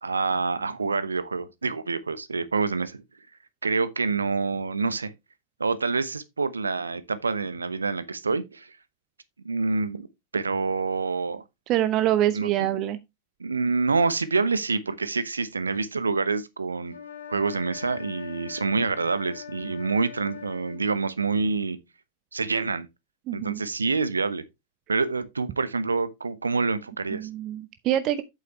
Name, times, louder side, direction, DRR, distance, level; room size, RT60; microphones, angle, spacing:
voice 1, 0.0-3.0 3.6-5.1 5.6-8.8 9.4-10.1 10.3-11.4 12.3-12.7 13.4-17.0 17.3-21.8 22.3-22.9 23.3-24.4 24.9-27.3, right 4 dB, 75° right, 0.9 m, -27 dB
voice 2, 11.7-13.0 23.3-23.6 27.1-28.2, right 12 dB, 35° right, 0.7 m, -25 dB
sound 1, 16.9-20.8, left 8 dB, 80° left, 2.6 m, -41 dB
8.2 x 7.8 x 3.2 m
figure-of-eight pair, 90°, 0 cm